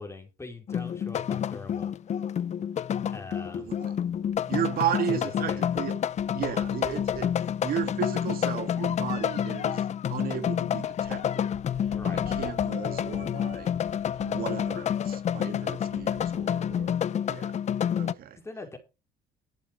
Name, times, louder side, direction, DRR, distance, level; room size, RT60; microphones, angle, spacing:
voice 1, 0.0-1.9 3.1-3.7 4.8-4.9 5.2-5.7 11.8-12.2 18.4-18.8, left 3 dB, 15° left, 4.5 m, -42 dB
sound 1, 0.7-18.1, left 9 dB, 40° left, 0.6 m, -29 dB
voice 2, 3.6-4.0 4.5-6.0 6.3-7.3 7.6-11.5 12.0-13.7 14.2-17.6 18.0-18.4, right 10 dB, 60° right, 1.9 m, -34 dB
sound 2, 3.7-16.9, right 3 dB, 30° right, 5.5 m, -52 dB
12.5 x 9.9 x 4.7 m
cardioid pair, 110°, 17 cm